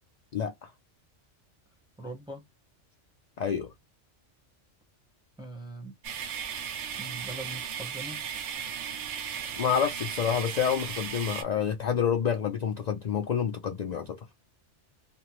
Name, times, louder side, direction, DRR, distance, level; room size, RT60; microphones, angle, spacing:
voice 1, 0.3-0.7 3.4-3.7 9.6-14.2, left 7 dB, 70° left, 0.4 m, -28 dB
voice 2, 2.0-2.4 5.4-5.9 7.0-8.2, right 2 dB, 5° right, 0.6 m, -41 dB
sound 1, 6.0-11.4, right 8 dB, 80° right, 1.0 m, -36 dB
3.2 x 2.0 x 2.9 m
omnidirectional pair, 1.2 m